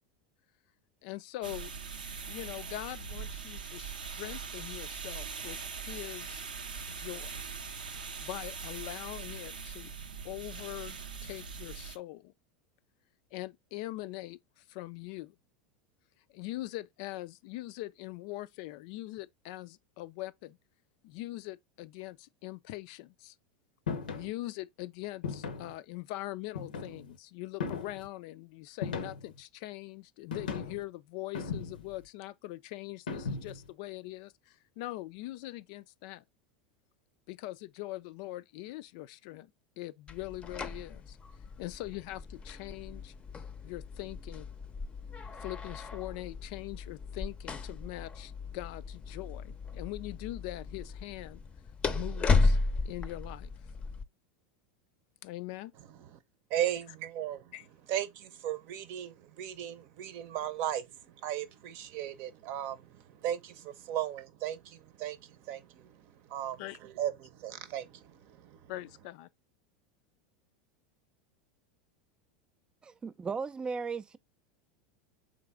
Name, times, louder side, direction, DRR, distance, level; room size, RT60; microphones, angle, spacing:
voice 1, 1.0-1.7 2.3-5.6 5.9-6.4 6.9-7.4 8.2-9.9 10.2-11.0 11.2-12.3 13.3-15.4 16.3-20.6 21.0-23.3 24.1-36.2 37.3-39.5 39.8-41.2 41.6-43.1 43.6-44.5 45.4-51.4 51.9-52.6 52.8-53.5 55.2-55.7 57.5-57.7 66.6-66.8 68.7-69.3, left 17 dB, 60° left, 0.3 m, -42 dB
sound 1, 1.4-12.0, right 5 dB, 90° right, 0.6 m, -41 dB
sound 2, 23.9-24.3 25.2-25.7 26.6-27.1 27.6-28.1 28.8-29.4 30.3-30.8 31.3-32.0 33.1-33.7, left 5 dB, 85° left, 0.7 m, -37 dB
sound 3, 40.1-54.0, left 3 dB, 25° left, 0.6 m, -34 dB
voice 2, 56.5-57.5 57.9-68.7, right 11 dB, 55° right, 0.7 m, -37 dB
voice 3, 72.8-74.2, right 5 dB, 20° right, 0.3 m, -36 dB
3.8 x 3.2 x 3.4 m
hypercardioid pair, 85°, 5 cm